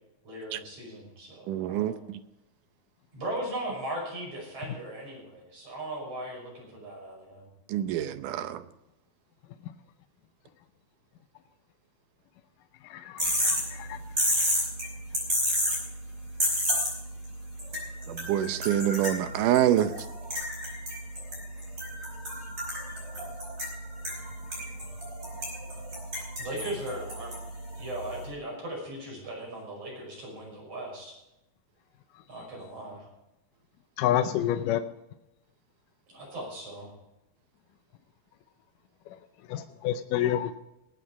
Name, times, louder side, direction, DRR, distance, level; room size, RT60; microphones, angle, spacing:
voice 1, 0.2-2.0 3.1-7.5 26.4-27.3 27.8-31.2 32.3-33.1 36.1-36.9, right 1 dB, 40° right, -2 dB, 6.7 m, -38 dB
voice 2, 1.5-2.2 7.7-8.6 18.1-20.0, right 11 dB, 75° right, 11 dB, 2.1 m, -26 dB
voice 3, 12.9-14.0 34.0-34.8 39.5-40.6, left 11 dB, 75° left, 9 dB, 2.1 m, -28 dB
sound 1, 13.2-28.2, equal, 25° right, 5.1 m, -32 dB
20.0 x 8.5 x 4.8 m, 0.92 s
omnidirectional pair, 4.2 m